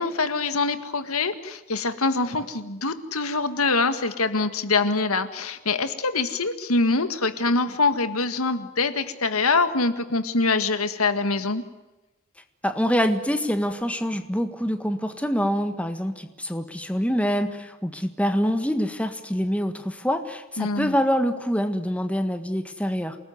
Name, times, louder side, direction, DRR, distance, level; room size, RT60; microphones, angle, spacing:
voice 1, 0.0-11.6 20.6-20.9, left 3 dB, 85° left, 10 dB, 1.9 m, -24 dB
voice 2, 12.6-23.2, equal, 5° left, 7 dB, 1.6 m, -25 dB
28.0 x 19.5 x 9.7 m, 1.0 s
head